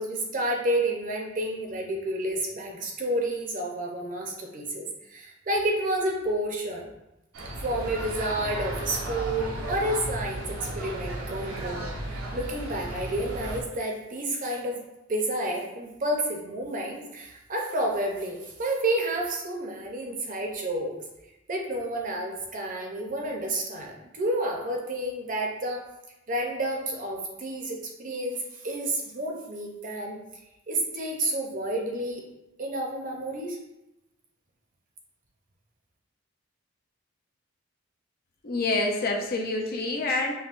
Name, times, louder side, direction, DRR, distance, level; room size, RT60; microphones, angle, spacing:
voice 1, 0.0-6.9 7.6-11.9 12.3-14.8 15.1-21.0 21.5-25.8 26.3-30.2 30.7-32.2 32.6-33.6, right 1 dB, 40° right, 0 dB, 0.6 m, -30 dB
sound 1, 7.3-13.6, right 1 dB, 90° right, 0.6 m, -34 dB
voice 2, 38.4-40.3, left 2 dB, 50° left, 2 dB, 0.5 m, -27 dB
5.4 x 2.1 x 2.5 m, 0.93 s
head